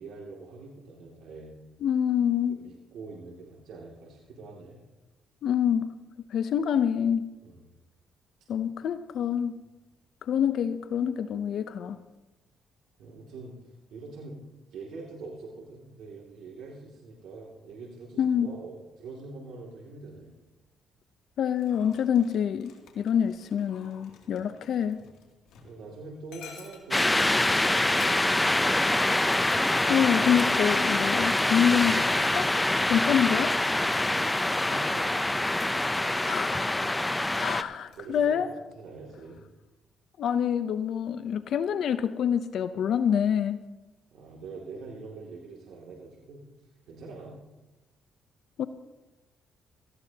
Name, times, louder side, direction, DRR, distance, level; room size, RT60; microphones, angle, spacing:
voice 1, 0.0-1.5 2.5-4.8 7.4-7.7 13.0-14.4 14.7-20.3 24.2-24.5 25.6-27.4 27.7-29.1 33.8-35.4 37.9-39.4 44.1-46.5 46.9-47.4, right 3 dB, 80° right, -3 dB, 2.5 m, -44 dB
voice 2, 1.8-2.6 5.4-5.9 6.3-7.2 8.5-9.5 10.3-12.0 18.2-18.5 21.4-25.0 29.9-32.5 32.9-33.5 36.2-36.7 37.4-38.5 40.2-43.6 48.6-48.7, left 8 dB, 70° left, 11 dB, 0.7 m, -26 dB
Dog, 21.5-38.1, left 6 dB, 85° left, 2.6 m, -54 dB
sound 1, 26.9-37.6, left 1 dB, 10° left, 0.6 m, -25 dB
18.0 x 14.5 x 2.9 m, 1.0 s
cardioid pair, 90°, 0 cm